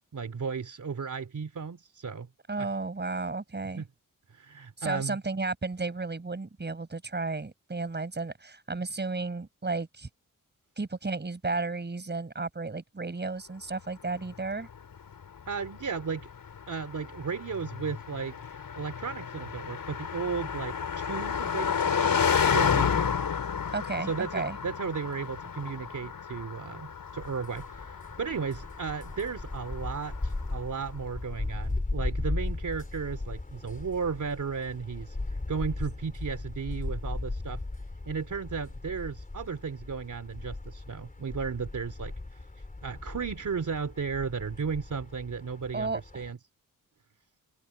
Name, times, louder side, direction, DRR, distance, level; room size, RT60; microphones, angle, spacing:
voice 1, 0.0-2.3 2.6-2.7 3.8-3.9 4.3-5.2 15.5-16.3 16.7-23.1 24.1-37.6 38.0-42.1 42.8-46.4, right 5 dB, 60° right, 3.3 m, -35 dB
voice 2, 2.5-3.8 4.8-10.1 10.8-14.7 23.7-24.6 45.7-46.3, right 3 dB, 30° right, 5.5 m, -33 dB
Car passing by, 14.2-30.6, left 7 dB, 75° left, 4.9 m, -31 dB
sound 1, 27.2-46.3, left 2 dB, 25° left, 4.6 m, -37 dB
open air
wide cardioid pair, 95°, 34 cm